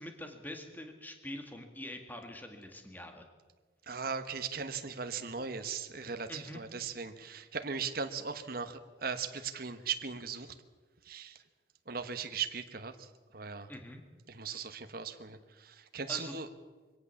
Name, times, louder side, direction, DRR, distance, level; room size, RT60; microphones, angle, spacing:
voice 1, 0.0-3.3 6.3-6.6 13.7-14.0 16.1-16.3, left 1 dB, 10° left, 4 dB, 2.1 m, -44 dB
voice 2, 3.9-10.5 11.0-11.4 11.9-13.7 14.3-16.5, right 6 dB, 50° right, 8 dB, 1.2 m, -38 dB
23.0 x 17.5 x 7.1 m, 1.4 s
head